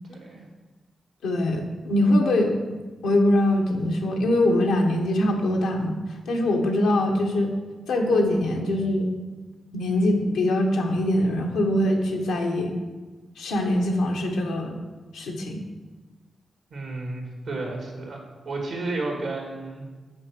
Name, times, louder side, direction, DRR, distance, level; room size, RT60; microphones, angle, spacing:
voice 1, 0.1-0.4 16.7-18.2 18.4-19.8, right 2 dB, 80° right, 0 dB, 2.2 m, -32 dB
voice 2, 1.2-2.5 3.0-6.0 6.3-7.5 7.9-9.1 9.7-12.7 13.4-14.8 15.1-15.6, left 1 dB, 90° left, 1 dB, 1.1 m, -23 dB
6.4 x 4.8 x 6.0 m, 1.3 s
supercardioid pair, 40°, 0 cm